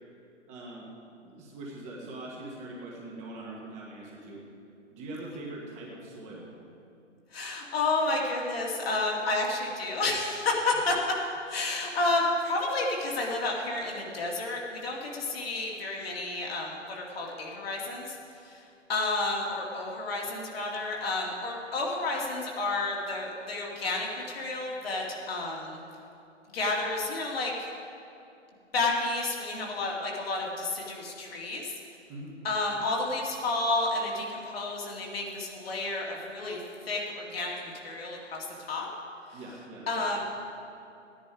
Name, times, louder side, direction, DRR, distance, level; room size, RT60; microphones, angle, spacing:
voice 1, 0.5-0.9 1.2-4.4 4.9-6.5 10.7-10.8 32.1-32.3 39.3-40.3, right 2 dB, 20° right, -3 dB, 1.7 m, -42 dB
voice 2, 7.3-11.0 11.5-18.2 18.4-18.6 18.9-25.8 26.5-27.7 28.7-31.7 32.4-38.9 39.9-40.2, left 2 dB, 50° left, -2 dB, 2.5 m, -31 dB
14.5 x 10.5 x 4.9 m, 2.6 s
figure-of-eight pair, 135°, 37 cm